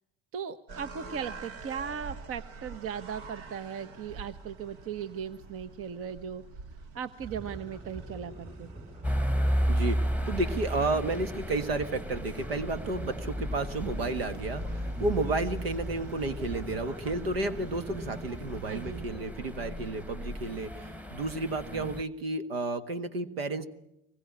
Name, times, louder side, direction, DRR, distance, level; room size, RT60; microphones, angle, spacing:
voice 1, 0.3-6.4 6.9-8.7 18.6-19.0, right 7 dB, 50° right, 10 dB, 1.2 m, -38 dB
sound 1, 0.7-19.0, right 3 dB, 70° right, 2.0 m, -48 dB
sound 2, 7.2-19.3, right 2 dB, 20° right, 6.9 m, -45 dB
sound 3, 9.0-22.0, equal, 5° right, 1.5 m, -34 dB
voice 2, 9.7-23.7, right 2 dB, 85° right, 12 dB, 1.5 m, -32 dB
24.0 x 21.0 x 8.7 m, 0.83 s
hypercardioid pair, 65°, 29 cm